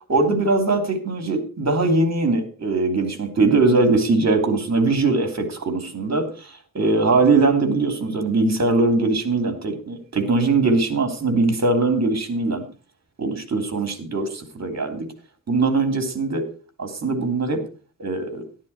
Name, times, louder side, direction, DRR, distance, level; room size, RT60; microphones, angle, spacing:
voice 1, 0.1-12.6 13.2-15.1 15.5-16.5 16.8-17.6 18.0-18.4, right 3 dB, 50° right, 7 dB, 3.2 m, -21 dB
13.0 x 12.0 x 4.3 m, 0.38 s
wide cardioid pair, 140°, 34 cm